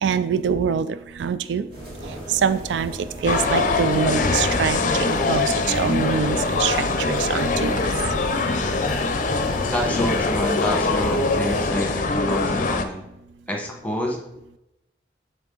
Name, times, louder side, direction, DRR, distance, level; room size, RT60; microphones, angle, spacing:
voice 1, 0.0-1.7 2.3-7.8, right 7 dB, 85° right, 13 dB, 0.3 m, -24 dB
sound 1, 1.7-11.7, right 1 dB, 60° right, 2.2 m, -36 dB
sound 2, 3.2-12.8, left 3 dB, 45° left, 0.5 m, -23 dB
voice 2, 9.6-13.1 13.5-14.2, left 1 dB, 10° left, 0 dB, 1.1 m, -28 dB
8.2 x 3.5 x 3.8 m, 0.87 s
head